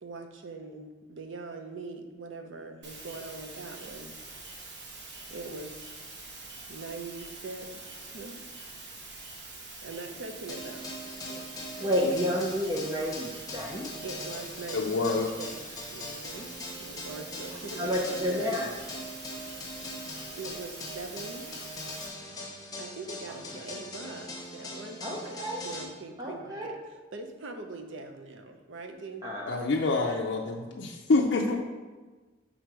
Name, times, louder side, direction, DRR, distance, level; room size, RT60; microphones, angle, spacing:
voice 1, 0.0-4.2 4.5-4.7 5.3-6.0 6.7-8.4 9.8-10.9 11.3-11.9 14.0-18.6 20.4-21.4 22.8-26.8 27.1-29.3, right 3 dB, 80° right, 5 dB, 0.7 m, -42 dB
sound 1, 2.8-22.1, right 3 dB, 60° right, 1.1 m, -45 dB
sound 2, 10.5-25.8, left 1 dB, 20° left, 0.7 m, -41 dB
voice 2, 11.8-13.9 17.8-18.7 25.0-25.6 26.2-26.7 29.2-29.6, equal, 20° right, -2 dB, 0.5 m, -30 dB
voice 3, 14.7-15.3 29.4-31.6, left 3 dB, 65° left, -1 dB, 0.5 m, -26 dB
6.1 x 3.8 x 4.7 m, 1.3 s
head